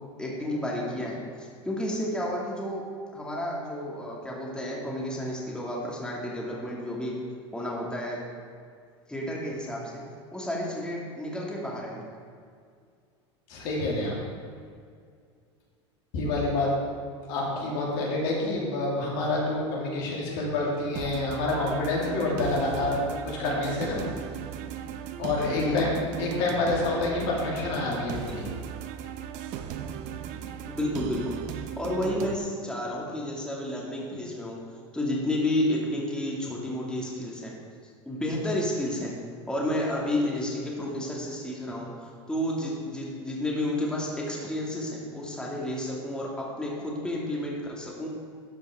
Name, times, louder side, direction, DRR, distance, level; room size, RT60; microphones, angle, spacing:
voice 1, 0.2-2.8 3.1-7.1 7.5-8.2 9.1-10.0 10.3-12.1 25.5-25.9 30.7-34.6 34.9-37.5 38.1-39.1 39.5-48.1, left 1 dB, 5° left, -4 dB, 2.2 m, -31 dB
voice 2, 13.5-14.2 16.1-16.7 17.3-24.0 25.2-25.9 26.2-28.5, left 2 dB, 65° left, -3 dB, 2.5 m, -28 dB
sound 1, 21.0-32.4, right 8 dB, 55° right, 0.7 m, -37 dB
12.0 x 5.2 x 4.9 m, 2.2 s
hypercardioid pair, 90°, 15 cm